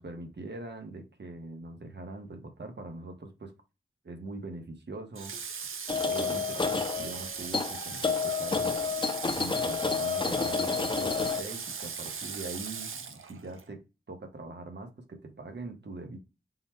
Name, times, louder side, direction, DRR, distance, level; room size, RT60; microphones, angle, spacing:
voice 1, 0.0-3.5 4.0-5.4 5.9-8.8 9.4-13.8 14.1-16.2, right 2 dB, 60° right, 5 dB, 0.9 m, -42 dB
Water / Water tap faucet, 5.2-13.7, right 6 dB, 85° right, 0.5 m, -39 dB
sound 1, 5.9-11.4, left 5 dB, 25° left, 0.4 m, -30 dB
3.9 x 2.1 x 4.3 m, 0.28 s
wide cardioid pair, 60°, 20 cm